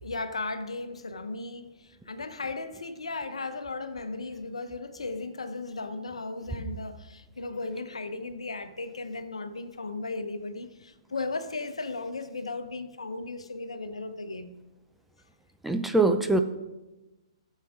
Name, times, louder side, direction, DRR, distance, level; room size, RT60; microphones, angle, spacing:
voice 1, 0.0-14.5, left 3 dB, 80° left, 0.9 m, -36 dB
voice 2, 15.6-16.4, right 2 dB, 5° right, 0.5 m, -23 dB
14.5 x 7.5 x 3.7 m
figure-of-eight pair, 125°, 3 cm